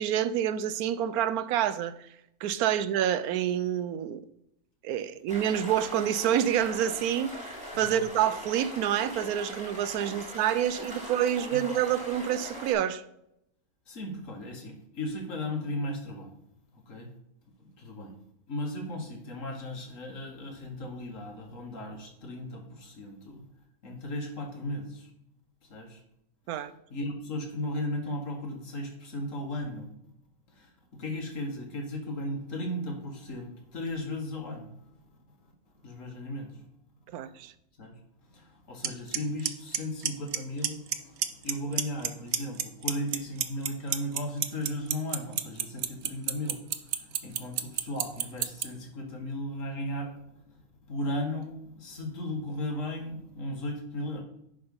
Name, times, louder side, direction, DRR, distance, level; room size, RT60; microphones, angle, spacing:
voice 1, 0.0-2.0 2.4-4.2 4.8-7.5 7.7-13.0 26.5-26.7 37.1-37.5, right 10 dB, 85° right, 1.1 m, -27 dB
sound 1, 5.3-12.7, equal, 5° right, 2.6 m, -41 dB
voice 2, 13.9-16.3 16.7-17.1 17.6-18.1 18.5-23.4 23.8-25.1 25.6-26.0 26.9-29.9 30.5-34.7 35.8-36.6 37.8-50.5 50.9-54.2, left 1 dB, 60° left, 1.9 m, -36 dB
Clock, 38.8-38.9 39.1-39.5 39.7-40.4 40.6-40.9 41.2-42.1 42.3-48.6, right 10 dB, 60° right, 0.8 m, -26 dB
10.5 x 3.9 x 5.3 m
omnidirectional pair, 1.5 m